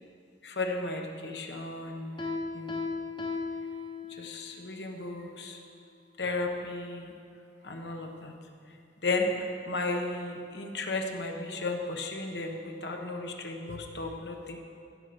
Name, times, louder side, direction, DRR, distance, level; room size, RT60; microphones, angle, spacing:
voice 1, 0.4-2.2 2.5-2.7 4.1-5.6 6.2-7.1 7.6-8.3 9.0-14.6, left 2 dB, 75° left, 3 dB, 1.3 m, -34 dB
Piano, 2.2-4.5, left 4 dB, 25° left, 1.0 m, -36 dB
16.0 x 6.6 x 6.1 m, 2.4 s
head